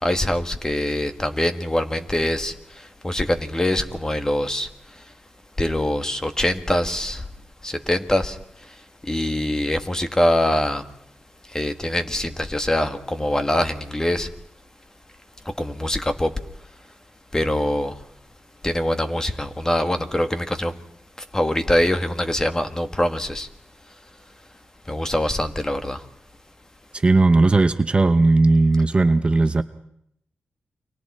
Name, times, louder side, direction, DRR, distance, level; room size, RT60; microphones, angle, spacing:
voice 1, 0.0-4.7 5.6-7.2 7.6-8.4 8.6-8.7 9.0-10.8 11.5-14.3 15.4-16.3 17.3-18.0 18.6-20.7 21.3-23.5 24.9-26.0, left 1 dB, 15° left, 8 dB, 1.7 m, -23 dB
voice 2, 27.0-29.6, right 3 dB, 30° right, 10 dB, 0.8 m, -17 dB
30.0 x 23.5 x 4.3 m, 0.73 s
wide cardioid pair, 95°, 4 cm